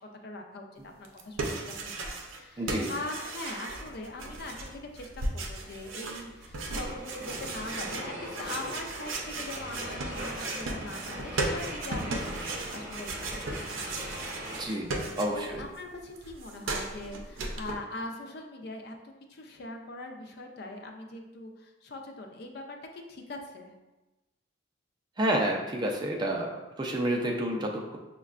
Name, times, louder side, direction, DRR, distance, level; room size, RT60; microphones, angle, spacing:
voice 1, 0.0-14.1 15.3-23.7, left 2 dB, 50° left, 3 dB, 0.4 m, -42 dB
sound 1, 1.0-2.4 2.7-15.6 15.9-17.7, right 2 dB, 80° right, 0.5 m, -36 dB
voice 2, 2.6-2.9 14.6-14.9 15.2-15.6 25.2-28.0, right 1 dB, 20° right, 0 dB, 0.3 m, -29 dB
sound 2, 6.8-14.7, right 1 dB, 40° right, 0.7 m, -40 dB
6.1 x 2.2 x 2.4 m, 1.1 s
head